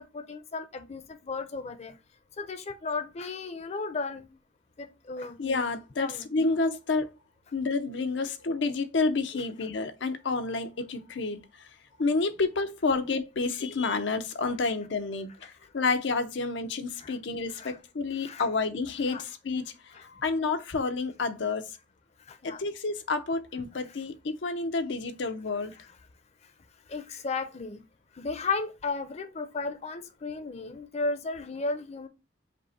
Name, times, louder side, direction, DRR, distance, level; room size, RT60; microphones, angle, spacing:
voice 1, 0.0-1.9 2.4-4.4 4.8-5.4 6.0-6.3 17.0-17.1 17.6-17.8 18.2-18.5 19.1-19.2 19.9-20.0 22.3-22.6 26.9-27.8 28.2-32.1, left 3 dB, 35° left, 0.5 m, -34 dB
voice 2, 5.4-7.1 7.5-11.7 12.0-21.8 22.6-25.7, left 3 dB, 90° left, 0.6 m, -29 dB
5.3 x 2.1 x 4.0 m
head